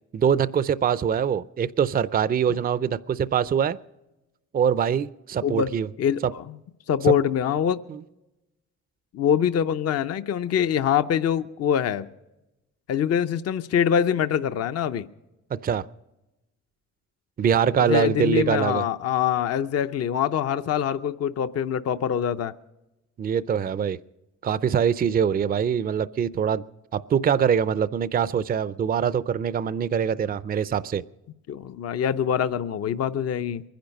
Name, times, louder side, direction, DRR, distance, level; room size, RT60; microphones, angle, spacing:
voice 1, 0.1-3.8 4.5-5.9 6.2-6.3 7.9-8.0 15.6-15.8 17.4-18.8 23.2-24.0 24.4-26.6 26.9-31.0, right 8 dB, 30° right, 16 dB, 0.5 m, -23 dB
voice 2, 6.0-6.4 6.9-7.8 9.1-12.1 12.9-15.1 17.8-22.5 31.5-33.6, left 8 dB, 55° left, 10 dB, 0.6 m, -24 dB
23.0 x 10.5 x 5.3 m, 0.97 s
cardioid pair, 90°, 30 cm